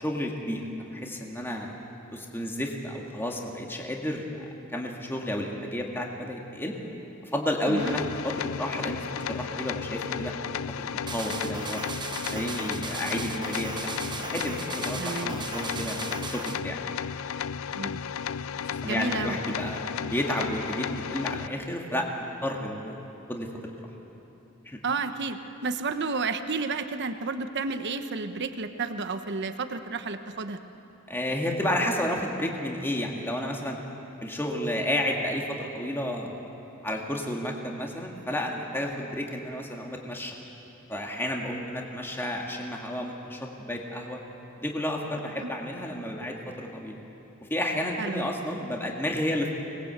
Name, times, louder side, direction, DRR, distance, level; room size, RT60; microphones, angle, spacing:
voice 1, 0.0-1.8 2.1-6.7 7.2-10.3 10.8-11.8 12.2-16.8 18.7-22.1 22.4-23.0 23.3-23.5 24.7-24.8 31.1-33.8 34.2-36.4 36.8-40.3 40.9-44.2 44.6-47.0 47.4-49.5, left 1 dB, 10° left, 0 dB, 1.9 m, -31 dB
sound 1, 7.8-21.5, left 7 dB, 70° left, 0.4 m, -34 dB
sound 2, 11.1-16.6, right 4 dB, 20° right, 0.9 m, -37 dB
voice 2, 15.0-15.4 17.7-18.0 18.8-19.4 24.8-30.6 45.4-45.5 48.0-48.3, right 4 dB, 55° right, 8 dB, 1.0 m, -31 dB
25.5 x 20.0 x 8.1 m, 2.9 s
head